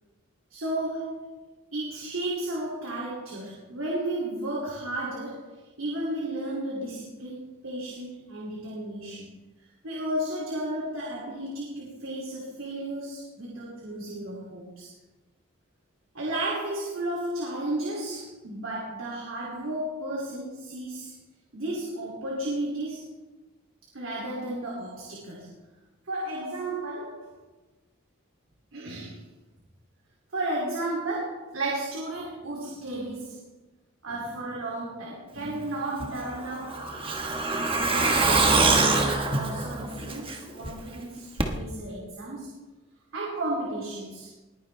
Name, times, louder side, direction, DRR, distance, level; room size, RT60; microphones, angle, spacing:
voice 1, 0.5-1.3 1.7-9.3 9.8-14.9 16.1-21.2 21.5-23.1 23.9-25.5 26.1-27.3 28.7-29.2 30.3-33.4 34.0-36.8 37.5-42.5 43.1-44.3, right 1 dB, 80° right, -3 dB, 2.6 m, -33 dB
Truck, 36.0-40.7 41.0-41.1 41.4-41.5, right 3 dB, 25° right, 1.2 m, -24 dB
20.5 x 9.9 x 3.3 m, 1.1 s
head